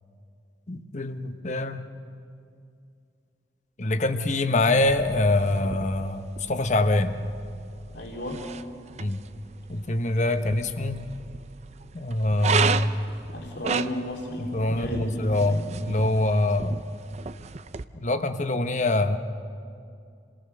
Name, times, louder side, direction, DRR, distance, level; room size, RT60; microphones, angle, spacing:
voice 1, 0.7-1.8 3.8-7.2 9.0-9.2 9.7-11.0 11.9-13.0 14.4-16.8 17.9-19.2, left 2 dB, 40° left, 9 dB, 1.0 m, -24 dB
sound 1, 4.7-17.8, right 5 dB, 40° right, 0.5 m, -34 dB
voice 2, 7.9-8.4 13.3-15.7, left 1 dB, 80° left, 0 dB, 3.1 m, -34 dB
28.5 x 19.5 x 6.7 m, 2.4 s
head